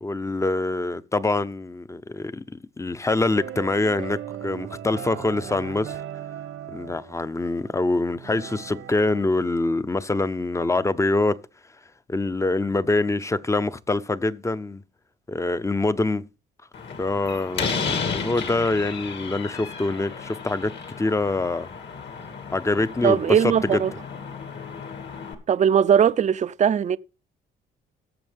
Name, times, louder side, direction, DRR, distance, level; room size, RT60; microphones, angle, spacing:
voice 1, 0.0-6.0 6.7-11.4 12.1-14.8 15.3-16.3 17.0-21.7 22.5-23.8, left 2 dB, 15° left, 0.6 m, -25 dB
sound 1, 3.2-9.2, right 11 dB, 85° right, 1.3 m, -38 dB
Slam, 16.7-25.3, left 5 dB, 60° left, 2.5 m, -33 dB
voice 2, 23.0-23.9 25.5-27.0, right 8 dB, 35° right, 0.5 m, -19 dB
18.0 x 7.1 x 3.4 m
cardioid pair, 90°, 20 cm